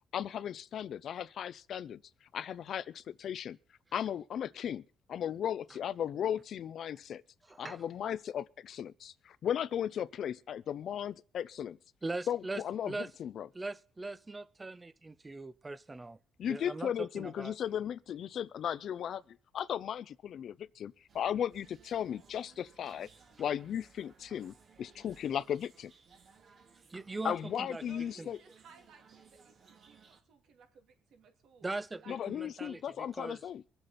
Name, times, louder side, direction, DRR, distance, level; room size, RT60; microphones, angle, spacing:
voice 1, 0.1-2.0 2.3-3.6 3.9-4.8 5.1-7.2 7.6-11.8 12.3-12.9 13.2-13.5 16.4-19.2 19.5-23.1 23.4-25.9 27.2-28.4 32.1-33.6, left 9 dB, 65° left, 0.6 m, -36 dB
voice 2, 7.5-7.8 12.0-13.1 13.5-16.2 16.5-17.5 26.9-27.9 28.2-28.3 31.6-33.5, right 2 dB, 20° right, 0.8 m, -41 dB
sound 1, 21.1-30.2, right 5 dB, 60° right, 2.4 m, -61 dB
voice 3, 27.8-31.7 32.0-32.2, right 6 dB, 75° right, 2.7 m, -59 dB
23.5 x 7.9 x 4.3 m
cardioid pair, 90°, 0 cm